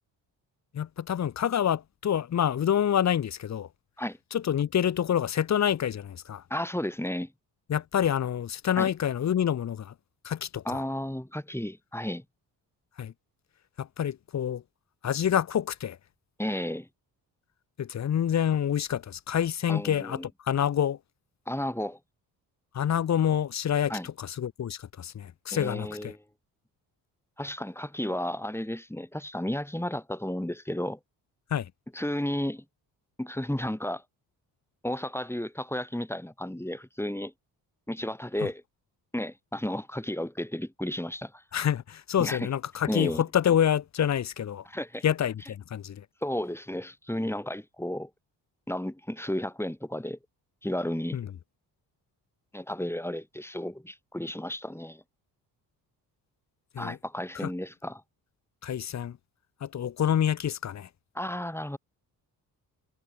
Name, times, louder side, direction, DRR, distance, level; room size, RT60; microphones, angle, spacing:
voice 1, 0.7-3.7 4.3-6.4 7.7-9.9 10.2-10.8 13.0-13.1 13.8-14.6 15.0-16.0 17.8-20.2 20.4-21.0 22.7-26.1 31.5-31.7 41.5-44.6 45.0-46.0 51.1-51.3 56.7-57.0 57.3-57.5 58.6-59.2 59.6-60.9, left 9 dB, 35° left, 0.7 m, -27 dB
voice 2, 6.5-7.3 8.8-8.9 10.6-12.2 16.4-16.9 19.7-20.3 21.5-22.0 23.9-24.1 25.5-26.2 27.4-31.0 31.9-32.6 33.2-34.0 34.8-37.3 37.9-38.6 39.1-41.4 42.2-42.5 42.9-43.2 44.7-45.0 46.2-48.1 48.7-50.2 50.6-51.2 52.5-55.0 56.8-58.0 61.1-61.8, left 1 dB, 5° left, 4.1 m, -33 dB
hypercardioid pair, 45°, 49 cm